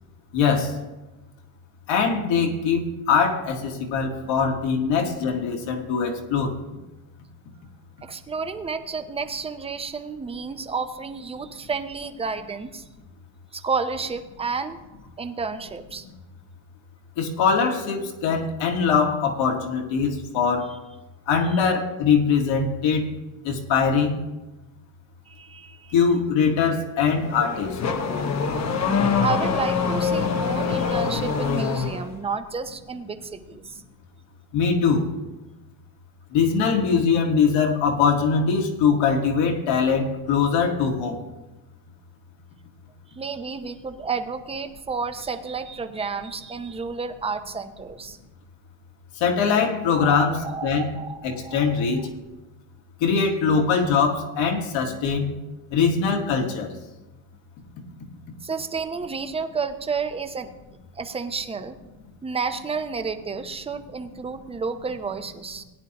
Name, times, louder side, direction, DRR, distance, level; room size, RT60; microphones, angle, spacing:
voice 1, 0.3-0.7 1.9-6.5 17.2-20.7 21.3-23.1 23.4-24.1 25.9-27.8 34.5-35.1 36.3-41.2 49.2-50.9 51.2-52.1 53.0-55.3 55.7-56.7, left 5 dB, 75° left, 2 dB, 1.8 m, -22 dB
voice 2, 8.0-12.8 13.5-14.8 15.2-16.1 20.7-20.8 25.3-25.9 29.2-33.8 43.2-48.2 50.0-51.9 58.4-60.5 61.0-61.8 62.2-65.6, right 5 dB, 15° right, 8 dB, 0.5 m, -31 dB
Car / Accelerating revving vroom, 27.1-32.1, left 5 dB, 35° left, 0.9 m, -24 dB
17.5 x 9.9 x 2.9 m, 1.1 s
cardioid pair, 145°, 46 cm